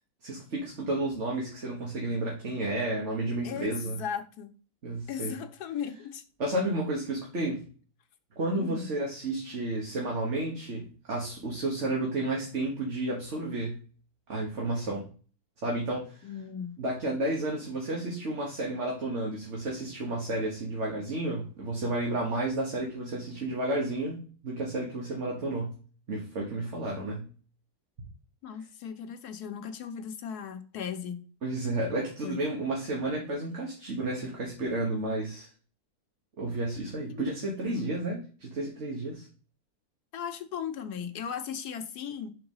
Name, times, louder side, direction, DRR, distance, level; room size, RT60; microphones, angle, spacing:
voice 1, 0.2-4.0 4.8-5.3 6.4-7.6 8.3-13.8 14.3-15.0 15.6-16.3 16.8-25.8 26.1-27.3 31.4-35.5 36.4-39.3, right 2 dB, 50° right, 1.7 m, -32 dB
voice 2, 3.4-4.5 5.1-6.2 8.6-8.9 16.2-16.8 28.4-31.2 32.2-32.4 37.1-37.3 37.6-37.9 40.1-42.3, left 8 dB, 90° left, 1.4 m, -37 dB
6.3 x 3.9 x 5.5 m
omnidirectional pair, 1.6 m